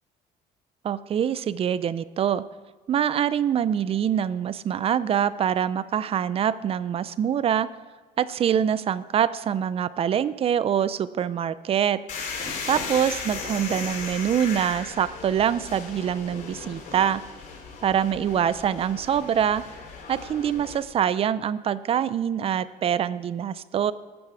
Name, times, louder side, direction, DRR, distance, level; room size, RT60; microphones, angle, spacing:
voice 1, 0.8-2.4 2.9-7.7 8.2-12.0 12.7-17.2 17.8-19.6 20.1-23.9, right 9 dB, 35° right, 17 dB, 0.5 m, -24 dB
sound 1, 12.1-20.8, left 5 dB, 55° left, 3.5 m, -36 dB
13.0 x 8.2 x 6.9 m, 1.4 s
cardioid pair, 135°, 17 cm